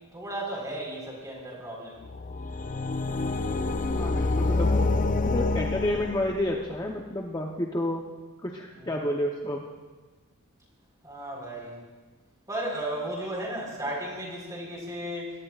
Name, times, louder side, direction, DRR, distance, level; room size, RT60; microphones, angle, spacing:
voice 1, 0.1-2.0 8.8-8.9 11.0-11.7 12.5-15.3, right 1 dB, 15° right, -2 dB, 4.3 m, -34 dB
sound 1, 2.0-6.7, left 3 dB, 35° left, 0.5 m, -27 dB
voice 2, 4.0-4.7 5.3-8.0 8.4-9.6, left 1 dB, 20° left, 0 dB, 0.8 m, -30 dB
22.5 x 18.0 x 2.5 m, 1.3 s
head